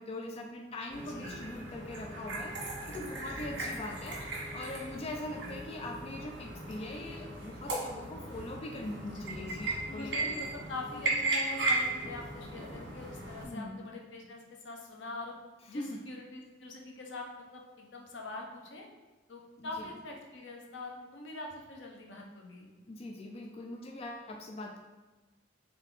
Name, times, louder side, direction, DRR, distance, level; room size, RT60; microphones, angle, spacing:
voice 1, 0.0-4.2 4.5-10.3 13.4-13.8 15.7-16.0 19.6-19.9 22.9-24.8, left 1 dB, 35° left, 1 dB, 0.3 m, -42 dB
sound 1, 0.9-13.4, right 2 dB, 70° right, 1.4 m, -36 dB
voice 2, 1.0-1.5 9.0-15.3 15.7-18.9 19.3-22.7, left 2 dB, 80° left, 0 dB, 0.8 m, -44 dB
3.7 x 3.5 x 3.7 m, 1.2 s
head